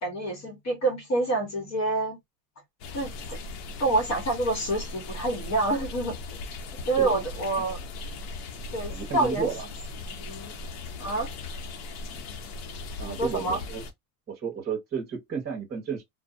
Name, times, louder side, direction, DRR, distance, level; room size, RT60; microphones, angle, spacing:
voice 1, 0.0-2.2 2.9-3.4 3.8-6.4 6.9-7.8 8.7-9.5 10.1-10.5 11.0-11.3 13.1-13.6, right 2 dB, 40° left, 1.0 m, -27 dB
sound 1, 2.8-13.9, left 3 dB, 60° left, 0.8 m, -38 dB
voice 2, 8.9-9.6 13.0-13.8 14.3-16.0, right 6 dB, 25° right, 1.1 m, -33 dB
2.5 x 2.1 x 2.5 m
supercardioid pair, 140°, 42 cm